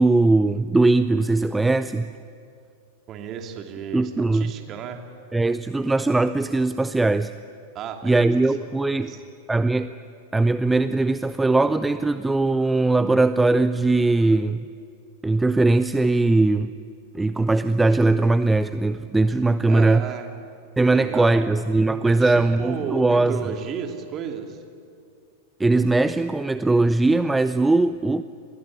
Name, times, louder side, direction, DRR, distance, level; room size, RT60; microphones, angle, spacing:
voice 1, 0.0-2.1 3.9-4.5 5.3-7.3 8.0-9.1 9.5-9.9 10.3-14.6 15.2-16.7 17.1-20.1 20.8-23.4 25.6-28.2, right 2 dB, 10° right, 13 dB, 0.6 m, -20 dB
voice 2, 3.1-5.0 7.7-8.3 8.9-9.2 19.7-20.3 20.9-21.5 22.0-24.6, right 8 dB, 35° right, 5 dB, 2.8 m, -33 dB
29.0 x 21.0 x 8.7 m, 2.4 s
figure-of-eight pair, 90°, 0 cm